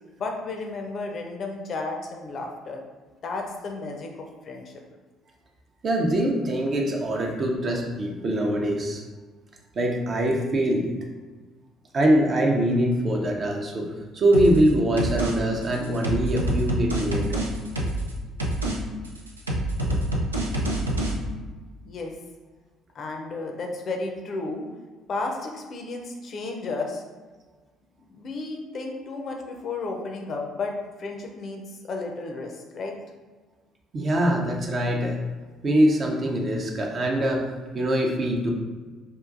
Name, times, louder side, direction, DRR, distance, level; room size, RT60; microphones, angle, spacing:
voice 1, 0.2-2.8 3.2-4.8 21.8-22.1 22.9-24.7 25.1-27.0 28.1-33.0, left 3 dB, 45° left, 2 dB, 0.6 m, -33 dB
voice 2, 5.8-9.0 9.8-10.9 11.9-17.4 33.9-35.2 35.6-38.5, right 1 dB, 40° right, 0 dB, 0.6 m, -23 dB
sound 1, 14.3-14.7 15.0-15.3 15.6-18.1 18.4-18.8 19.0-21.1, right 1 dB, 85° right, 0.4 m, -26 dB
4.6 x 2.5 x 2.5 m, 1.3 s
figure-of-eight pair, 50°, 0 cm